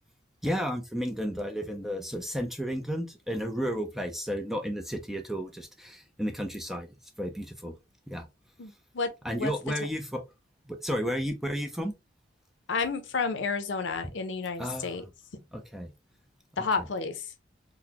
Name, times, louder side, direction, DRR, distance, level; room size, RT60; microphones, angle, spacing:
voice 1, 0.4-6.9 7.2-7.7 8.1-8.3 9.2-10.2 10.7-11.9 14.0-14.1 14.6-15.1 15.5-15.9 16.8-16.9, equal, ahead, 0.4 m, -32 dB
voice 2, 8.6-9.1 9.4-9.5 12.7-15.0 16.6-17.2, left 4 dB, 75° left, 0.6 m, -30 dB
3.9 x 2.1 x 2.8 m
head